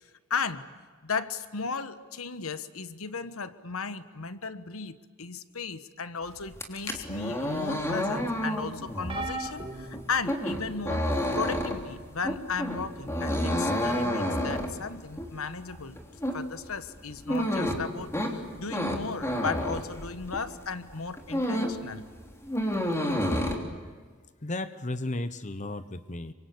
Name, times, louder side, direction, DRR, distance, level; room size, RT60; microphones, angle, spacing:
voice 1, 0.3-0.7 1.0-11.1 11.3-16.0 16.3-22.1, left 5 dB, 85° left, 12 dB, 1.3 m, -35 dB
sound 1, 6.5-20.5 20.9-21.9 22.1-23.5, equal, 15° left, 3.2 m, -30 dB
sound 2, 9.1-10.9 11.6-11.9 13.2-13.3, right 3 dB, 25° right, 3.0 m, -39 dB
voice 2, 24.4-26.3, left 2 dB, 35° left, 12 dB, 1.0 m, -34 dB
27.5 x 24.5 x 8.5 m, 1.5 s
head